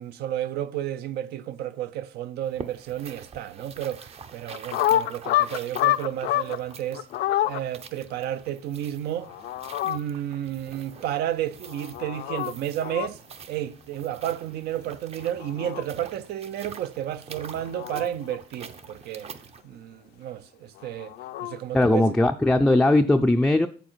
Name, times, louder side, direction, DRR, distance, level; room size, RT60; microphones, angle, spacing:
voice 1, 0.0-7.1 7.4-9.3 9.8-13.2 13.5-19.3 19.6-21.1 21.4-22.0, right 11 dB, 75° right, 0.6 m, -32 dB
sound 1, 2.4-19.6, right 6 dB, 35° right, 0.7 m, -46 dB
sound 2, 4.5-6.6 6.9-7.6 9.2-10.0 11.7-12.5 12.8-13.1 15.2-15.8 17.4-18.4 20.8-21.6, left 13 dB, 75° left, 0.5 m, -27 dB
voice 2, 21.7-23.7, left 1 dB, 5° left, 0.4 m, -19 dB
7.7 x 7.2 x 4.5 m
cardioid pair, 110°, 17 cm